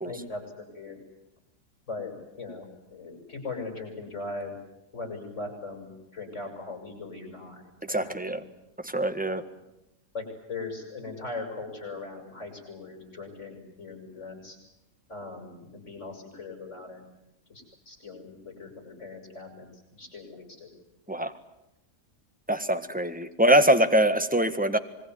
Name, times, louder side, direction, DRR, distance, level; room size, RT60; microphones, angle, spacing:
voice 1, 0.0-0.4 0.7-1.0 1.9-2.7 2.9-4.5 4.9-7.6 7.9-8.4 9.3-9.5 10.1-14.6 15.1-17.0 17.5-19.7 19.9-20.7, left 3 dB, 45° left, 4 dB, 7.2 m, -39 dB
voice 2, 7.9-8.4 8.8-9.4 21.1-21.3 22.5-24.8, right 1 dB, 5° right, 9 dB, 1.5 m, -23 dB
26.0 x 22.5 x 9.5 m, 0.88 s
omnidirectional pair, 1.7 m